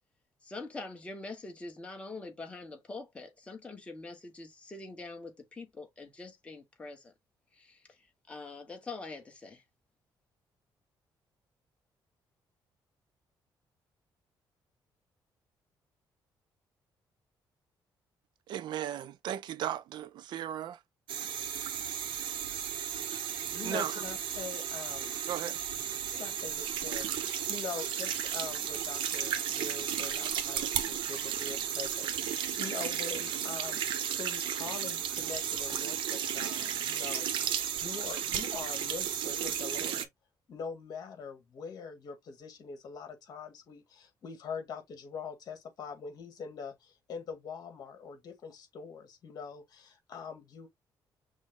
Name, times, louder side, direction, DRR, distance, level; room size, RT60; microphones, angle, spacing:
voice 1, 0.4-7.1 7.6-7.8 8.3-9.6, left 3 dB, 15° left, 1.2 m, -44 dB
voice 2, 18.5-20.8 23.6-24.0 25.3-25.6, right 11 dB, 65° right, 0.4 m, -36 dB
sound 1, 21.1-40.1, right 9 dB, 85° right, 0.9 m, -34 dB
voice 3, 23.5-25.2 26.1-37.5 37.8-40.1 40.5-50.7, left 5 dB, 50° left, 1.7 m, -43 dB
6.2 x 2.2 x 3.6 m
cardioid pair, 175°, 8 cm